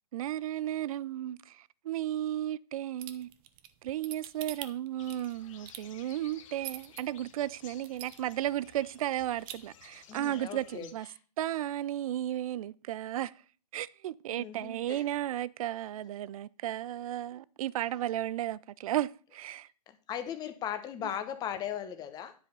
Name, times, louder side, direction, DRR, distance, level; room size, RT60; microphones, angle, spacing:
voice 1, 0.1-3.3 3.8-11.1 11.4-13.3 13.7-19.7, right 13 dB, 60° right, 0.4 m, -34 dB
sound 1, 3.0-7.0 7.5-7.6 7.8-8.5 8.8-8.9 9.2-9.5, right 13 dB, 35° right, 0.7 m, -43 dB
sound 2, 5.0-10.9, left 8 dB, 50° left, 1.2 m, -55 dB
voice 2, 10.1-11.2 14.3-15.1 19.9-22.3, left 9 dB, 20° left, 0.9 m, -38 dB
10.0 x 5.0 x 5.3 m
hypercardioid pair, 140°, 21 cm